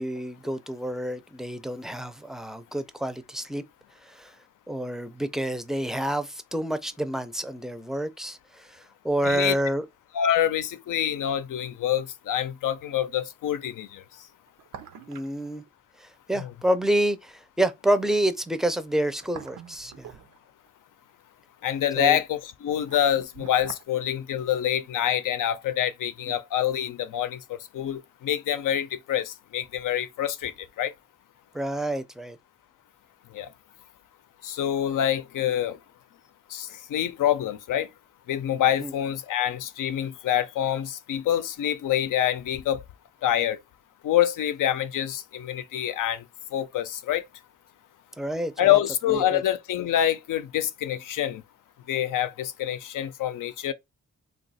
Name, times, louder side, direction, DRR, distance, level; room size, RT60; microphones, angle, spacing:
voice 1, 0.0-3.6 4.1-4.3 4.7-9.8 15.1-15.6 16.0-20.1 22.0-22.2 31.5-32.4 38.8-38.9 48.2-48.8 49.1-49.4, right 1 dB, ahead, 0.4 m, -28 dB
voice 2, 10.1-14.0 16.4-16.5 21.6-27.4 27.7-30.5 30.8-30.9 33.3-33.5 34.4-35.8 36.5-37.9 38.3-42.8 43.2-43.6 44.0-46.2 46.5-47.2 48.6-51.4 51.9-53.7, left 11 dB, 80° left, 0.5 m, -26 dB
sound 1, 11.2-11.3 14.3-15.4 15.7-15.8 18.9-20.7 22.4-23.9 24.2-24.3, right 8 dB, 85° right, 0.6 m, -45 dB
2.7 x 2.3 x 4.0 m
cardioid pair, 70°, 31 cm